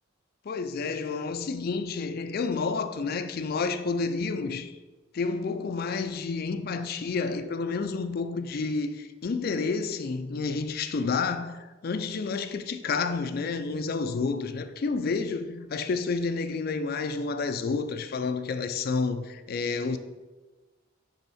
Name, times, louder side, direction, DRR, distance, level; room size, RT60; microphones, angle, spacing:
voice 1, 0.4-4.7 5.1-20.0, left 4 dB, 45° left, 0.3 m, -30 dB
7.0 x 3.4 x 4.1 m
head